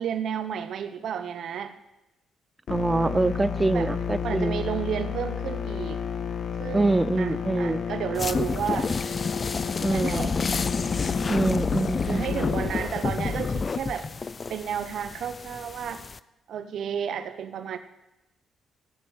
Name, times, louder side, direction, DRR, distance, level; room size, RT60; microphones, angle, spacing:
voice 1, 0.0-1.7 3.7-3.9 4.2-6.0 6.6-8.9 9.9-10.4 12.1-14.1 14.5-16.0 16.5-17.8, right 8 dB, 65° right, 10 dB, 1.0 m, -32 dB
sound 1, 2.7-12.7, left 7 dB, 60° left, 1.7 m, -32 dB
voice 2, 2.7-4.6 6.7-7.8 9.8-10.3 11.3-12.5, right 2 dB, 20° right, 16 dB, 0.6 m, -25 dB
sound 2, 8.2-16.2, left 4 dB, 35° left, 0.5 m, -29 dB
14.5 x 7.2 x 9.2 m, 0.93 s
cardioid pair, 90°, 0 cm